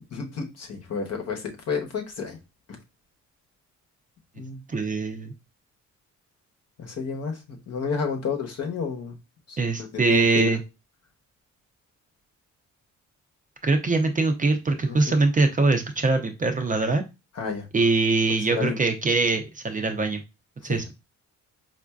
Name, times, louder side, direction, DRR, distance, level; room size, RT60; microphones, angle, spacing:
voice 1, 0.1-2.4 4.4-4.6 6.8-9.1 9.5-9.6 9.9-10.6 14.9-15.0 17.4-17.7 18.5-18.8 20.7-20.9, left 5 dB, 55° left, 1.0 m, -31 dB
voice 2, 4.7-5.3 9.6-10.6 13.6-17.0 17.7-20.2 20.6-20.9, right 3 dB, 25° right, 0.6 m, -23 dB
4.3 x 2.5 x 2.3 m
cardioid pair, 90°, 30 cm